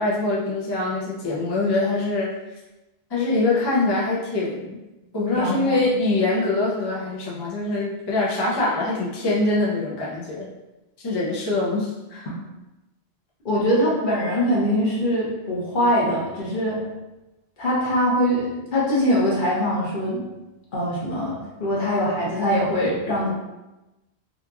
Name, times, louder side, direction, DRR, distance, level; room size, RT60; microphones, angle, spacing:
voice 1, 0.0-2.3 3.1-4.8 5.1-10.5 11.0-12.3, left 2 dB, 35° left, -6 dB, 0.4 m, -24 dB
voice 2, 5.3-5.9 13.4-16.8 17.6-20.2 20.7-23.3, equal, 50° left, -5 dB, 0.9 m, -22 dB
2.9 x 2.5 x 2.3 m, 1.0 s
omnidirectional pair, 1.1 m